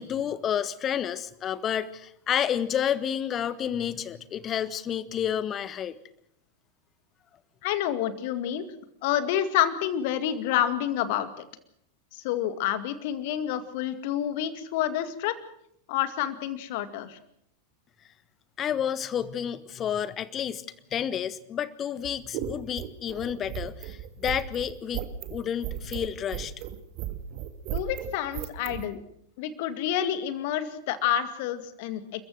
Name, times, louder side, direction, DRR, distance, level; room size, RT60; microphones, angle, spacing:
voice 1, 0.0-5.9 18.6-20.6 20.9-26.5, left 9 dB, 25° left, 17 dB, 1.4 m, -30 dB
voice 2, 7.6-8.6 9.0-11.4 12.1-15.3 15.9-17.2 27.7-29.0 29.4-32.3, left 11 dB, 50° left, 12 dB, 2.1 m, -28 dB
sound 1, 22.0-28.8, right 13 dB, 40° right, 2.0 m, -35 dB
29.5 x 14.5 x 7.8 m, 0.73 s
figure-of-eight pair, 90°, 0 cm